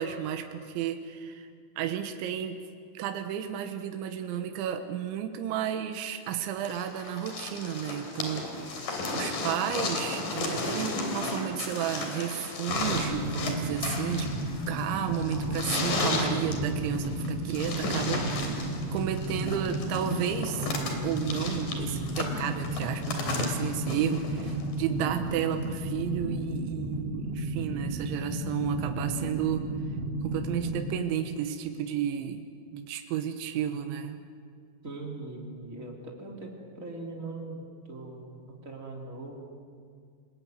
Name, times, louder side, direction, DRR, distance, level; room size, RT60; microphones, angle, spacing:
voice 1, 0.0-1.5 1.8-2.6 3.0-14.3 14.7-18.3 18.9-20.7 21.0-29.7 30.2-34.2, right 9 dB, 85° right, 7 dB, 3.6 m, -32 dB
sound 1, 6.7-24.7 25.8-25.9, left 3 dB, 50° left, 4.5 m, -34 dB
sound 2, 12.7-30.9, right 1 dB, 50° right, 2.7 m, -33 dB
voice 2, 34.8-39.4, right 2 dB, 20° right, 0 dB, 3.2 m, -41 dB
28.0 x 19.5 x 9.5 m, 2.1 s
omnidirectional pair, 5.3 m